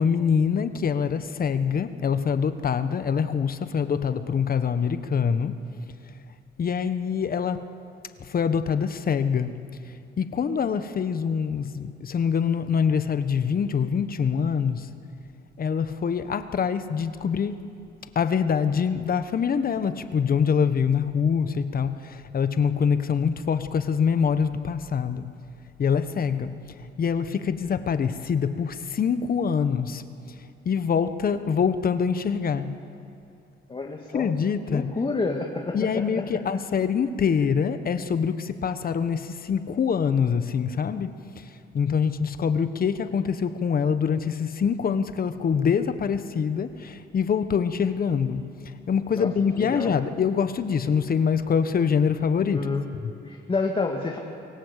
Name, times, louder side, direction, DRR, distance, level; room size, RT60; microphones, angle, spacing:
voice 1, 0.0-5.6 6.6-7.7 8.2-9.6 10.2-14.9 15.6-17.6 18.1-25.3 25.8-26.6 27.0-30.0 30.6-32.8 34.1-34.9 35.7-41.1 41.7-48.5 48.9-52.7 53.0-53.1, left 6 dB, 50° left, 11 dB, 1.2 m, -25 dB
voice 2, 33.7-34.3 34.7-36.2 49.1-50.0 52.5-52.9 53.3-54.2, left 3 dB, 25° left, 1 dB, 2.0 m, -29 dB
24.5 x 17.5 x 8.3 m, 2.6 s
cardioid pair, 90°, 20 cm